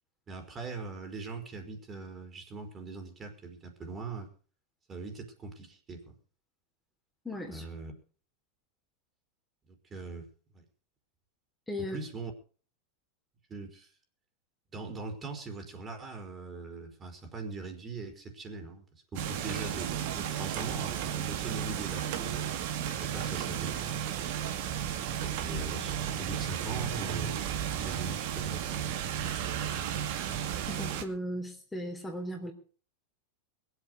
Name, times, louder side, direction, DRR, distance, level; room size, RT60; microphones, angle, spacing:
voice 1, 0.3-4.3 4.9-6.0 7.5-7.9 9.9-10.3 10.5-10.6 11.9-12.3 13.5-13.9 14.7-22.7 23.0-24.0 25.3-27.4 27.7-28.7, right 3 dB, 25° right, 4 dB, 4.7 m, -41 dB
voice 2, 7.3-7.6 11.7-12.0 30.7-32.5, equal, 10° left, 1 dB, 3.5 m, -37 dB
sound 1, 19.1-31.0, right 9 dB, 60° right, 2.4 m, -33 dB
21.5 x 8.3 x 6.5 m, 0.41 s
hypercardioid pair, 100°, 0 cm